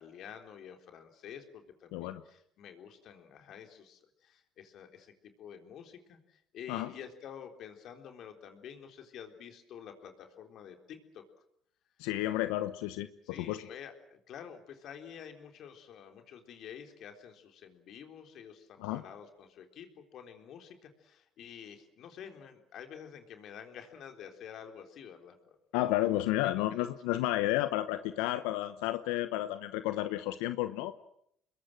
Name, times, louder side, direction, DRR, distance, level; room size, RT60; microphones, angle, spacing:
voice 1, 0.0-11.2 13.2-25.9 26.4-26.9, left 8 dB, 65° left, 6 dB, 3.9 m, -49 dB
voice 2, 1.9-2.2 6.7-6.9 12.0-13.1 13.4-13.7 18.8-19.0 25.7-30.9, left 15 dB, 85° left, 11 dB, 0.9 m, -31 dB
27.0 x 21.5 x 7.6 m, 0.72 s
supercardioid pair, 70°, 0 cm